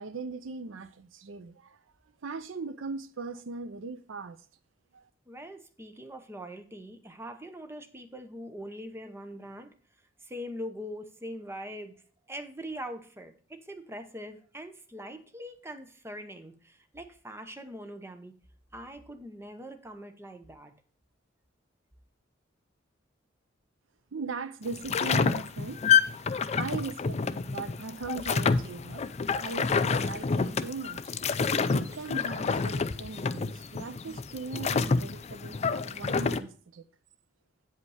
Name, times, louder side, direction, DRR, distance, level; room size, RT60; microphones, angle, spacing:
voice 1, 0.0-1.8 2.2-4.4 4.9-5.1 24.1-25.8 26.5-29.0 29.4-31.2 31.7-36.8, right 4 dB, 70° right, 0.5 m, -39 dB
voice 2, 5.3-9.7 10.2-18.4 18.7-20.7, equal, 15° right, 0.8 m, -42 dB
sound 1, 24.7-36.4, left 5 dB, 35° left, 0.4 m, -28 dB
8.3 x 5.3 x 4.8 m
head